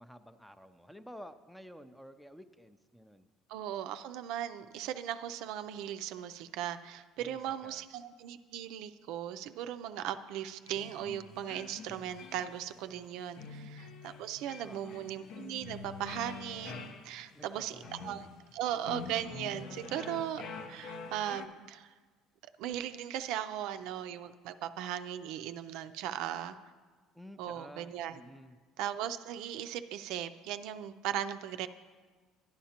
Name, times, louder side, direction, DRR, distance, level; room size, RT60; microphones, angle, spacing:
voice 1, 0.0-3.3 7.2-7.8 14.6-15.1 17.3-18.4 27.1-28.6, equal, ahead, 11 dB, 0.4 m, -52 dB
voice 2, 3.5-20.4 20.7-21.9 22.6-26.6 27.4-28.2 28.8-31.7, right 10 dB, 75° right, 10 dB, 0.4 m, -38 dB
sound 1, 10.7-21.5, left 4 dB, 65° left, 0.7 m, -46 dB
11.5 x 10.0 x 2.9 m, 1.4 s
cardioid pair, 120°, 0 cm